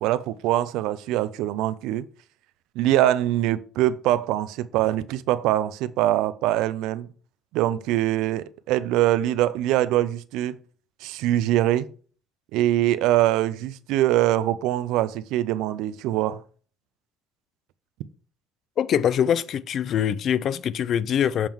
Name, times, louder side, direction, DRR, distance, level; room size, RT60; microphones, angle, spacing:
voice 1, 0.0-2.0 2.8-7.1 7.5-10.6 11.0-11.9 12.5-16.4, right 14 dB, 90° right, 0.5 m, -23 dB
voice 2, 18.8-21.5, left 9 dB, 50° left, 0.4 m, -23 dB
7.2 x 3.7 x 4.6 m
cardioid pair, 130°, 0 cm